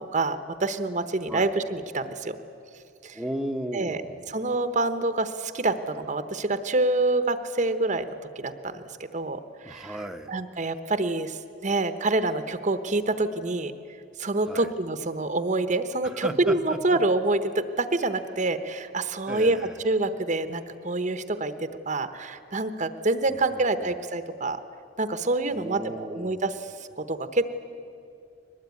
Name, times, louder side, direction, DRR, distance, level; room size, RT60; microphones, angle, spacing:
voice 1, 0.0-2.4 3.0-3.2 3.7-4.0 4.3-8.1 8.4-8.8 9.1-9.9 10.3-13.7 14.2-19.6 19.8-24.6 25.0-26.6 27.0-27.6, right 2 dB, 40° right, 10 dB, 0.9 m, -27 dB
voice 2, 3.1-4.3 9.6-10.4 14.4-14.7 16.0-17.0 19.3-19.8 23.3-23.9 25.5-26.4, equal, 5° right, 5 dB, 0.9 m, -35 dB
22.5 x 20.0 x 9.5 m, 2.6 s
head